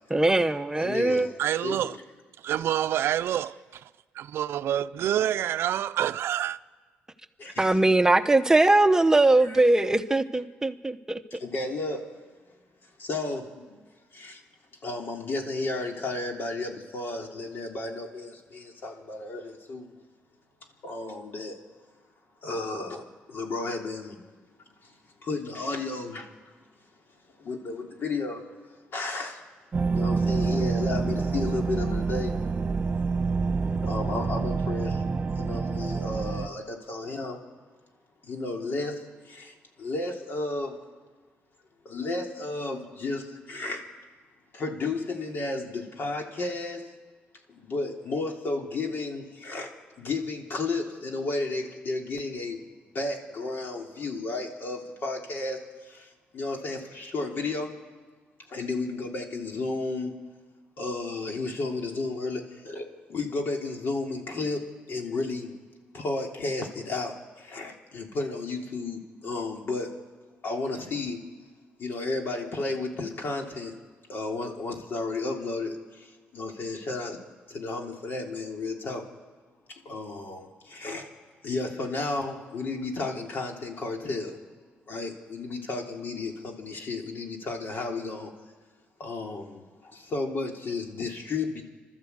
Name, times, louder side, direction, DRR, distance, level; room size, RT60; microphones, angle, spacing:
voice 1, 0.1-1.3 7.6-11.2, right 2 dB, 15° right, 0.8 m, -21 dB
voice 2, 0.7-1.9 7.4-7.8 9.4-9.6 11.3-12.1 13.0-13.9 14.1-14.4 14.8-20.0 20.8-21.6 22.4-24.2 24.8-25.0 25.2-26.3 27.4-28.4 28.9-29.4 29.9-32.4 33.8-35.0 35.3-37.4 38.2-40.8 41.8-43.8 44.5-46.9 47.5-49.7 50.0-52.6 52.9-57.8 58.5-60.2 60.8-65.5 65.9-69.9 70.4-71.2 71.8-73.8 74.1-77.2 77.5-79.1 79.7-81.1 81.4-84.4 84.9-88.3 89.0-91.6, left 3 dB, 55° left, 3.3 m, -33 dB
voice 3, 1.4-2.0 2.4-3.8 4.1-6.6, right 11 dB, 75° right, 0.5 m, -27 dB
sound 1, 29.7-36.5, right 4 dB, 35° right, 1.4 m, -27 dB
29.5 x 12.5 x 8.2 m
cardioid pair, 80°, 4 cm